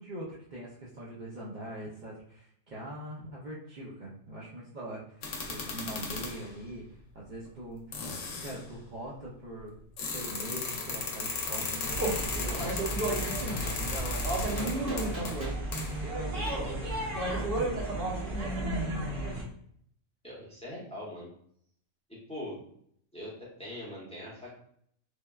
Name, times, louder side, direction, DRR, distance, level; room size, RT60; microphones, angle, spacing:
voice 1, 0.0-6.9 7.1-7.8 8.4-9.8 10.1-12.6 13.1-16.9 17.3-19.1, right 1 dB, 85° right, -6 dB, 0.4 m, -42 dB
sound 1, 5.2-6.5 7.5-7.6 7.9-8.6 10.0-16.1, left 4 dB, 65° left, 0.9 m, -36 dB
sound 2, 11.8-19.4, right 1 dB, 50° right, 0.8 m, -32 dB
Gunshot gunfire, 12.5-12.7 13.6-13.8 14.6-15.6 16.5-16.6, right 1 dB, 70° right, 1.4 m, -43 dB
voice 2, 20.2-21.3 22.1-22.6 23.1-24.5, left 1 dB, 5° left, -6 dB, 0.6 m, -42 dB
3.3 x 2.2 x 2.3 m, 0.66 s
omnidirectional pair, 1.5 m